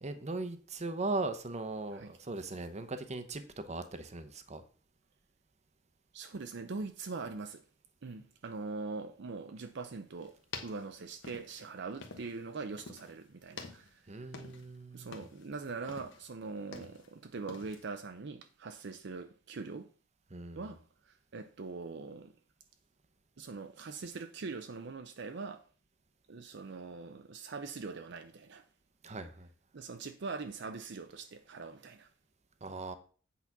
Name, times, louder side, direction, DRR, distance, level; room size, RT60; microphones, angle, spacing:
voice 1, 0.0-4.6 14.1-15.2 20.3-20.6 29.0-29.5 32.6-32.9, right 2 dB, 35° right, 0.8 m, -39 dB
voice 2, 6.1-7.6 8.0-10.4 10.6-14.0 14.9-19.9 20.5-22.3 23.4-25.7 26.3-28.6 29.7-32.1, right 4 dB, 60° right, 0.6 m, -42 dB
sound 1, 10.2-12.5 12.8-13.2 13.5-14.8 15.0-15.5 15.9-17.1 17.5-17.8, left 4 dB, 65° left, 1.3 m, -48 dB
8.3 x 4.1 x 5.9 m
head